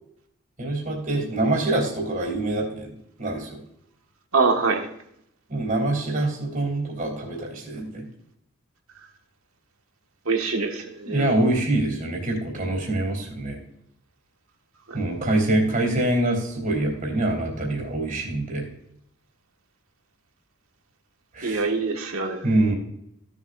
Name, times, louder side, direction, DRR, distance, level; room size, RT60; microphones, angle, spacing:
voice 1, 0.6-2.9 3.2-3.6 5.5-8.0 11.0-13.6 14.9-18.7 21.3-21.6 22.4-22.8, right 2 dB, 40° right, -1 dB, 2.9 m, -25 dB
voice 2, 4.3-4.8 10.3-11.3 14.9-15.0 21.4-22.4, right 4 dB, 85° right, 3 dB, 1.6 m, -24 dB
15.5 x 7.3 x 2.5 m, 0.75 s
head